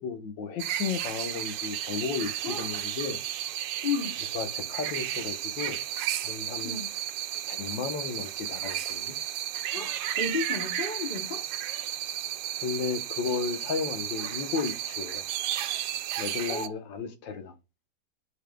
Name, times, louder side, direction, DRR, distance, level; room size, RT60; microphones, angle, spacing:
voice 1, 0.0-3.2 4.3-5.8 6.2-6.8 7.5-9.1 12.6-15.2 16.2-17.5, left 5 dB, 90° left, 1.7 m, -34 dB
sound 1, 0.6-16.7, right 12 dB, 80° right, 1.2 m, -33 dB
voice 2, 3.8-4.2 6.6-6.9 9.7-11.5 16.5-16.8, left 5 dB, 40° left, 0.9 m, -33 dB
11.5 x 4.1 x 2.2 m
omnidirectional pair, 1.9 m